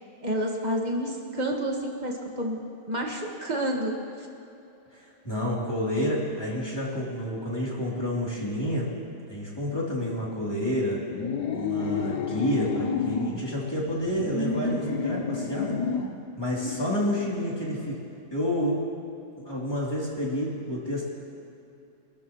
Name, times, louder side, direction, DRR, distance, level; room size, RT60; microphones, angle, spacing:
voice 1, 0.2-4.3 16.6-16.9, right 1 dB, 25° right, 0 dB, 1.8 m, -30 dB
voice 2, 4.9-8.9 9.3-11.0 11.5-15.8 16.4-18.0 18.3-18.8 19.4-21.0, equal, 15° left, -6 dB, 3.2 m, -29 dB
sound 1, 11.1-13.4 14.0-16.2, left 5 dB, 70° left, 1.5 m, -29 dB
25.5 x 13.5 x 3.1 m, 2.8 s
omnidirectional pair, 1.9 m